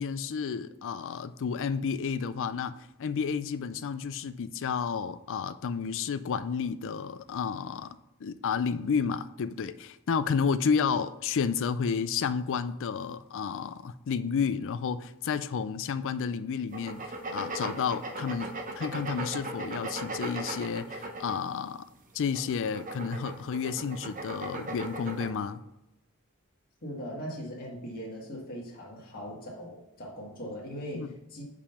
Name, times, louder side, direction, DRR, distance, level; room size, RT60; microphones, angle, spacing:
voice 1, 0.0-8.0 8.2-21.9 22.1-25.6 30.9-31.1, left 6 dB, 60° left, 0.4 m, -31 dB
sound 1, 16.7-21.6 22.2-25.3, right 2 dB, 35° right, 0.9 m, -37 dB
voice 2, 26.8-31.4, equal, 45° left, 1.6 m, -40 dB
5.3 x 5.0 x 5.7 m
head